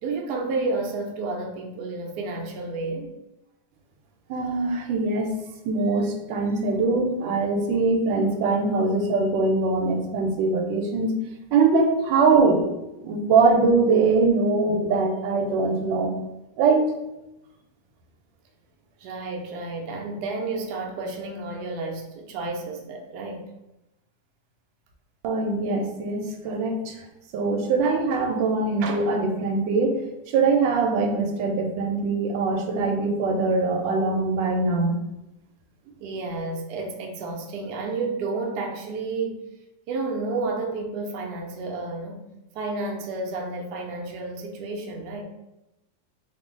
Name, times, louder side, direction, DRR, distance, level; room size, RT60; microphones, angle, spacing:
voice 1, 0.0-3.1 19.0-23.4 36.0-39.4 39.9-42.3 42.5-45.2, right 3 dB, 70° right, 1 dB, 1.0 m, -31 dB
voice 2, 4.3-5.4 5.6-11.1 11.5-12.6 13.0-16.1 16.6-16.9 25.2-27.0 27.3-34.9, right 3 dB, 90° right, 3 dB, 1.3 m, -22 dB
3.1 x 2.5 x 3.6 m, 0.95 s
omnidirectional pair, 2.0 m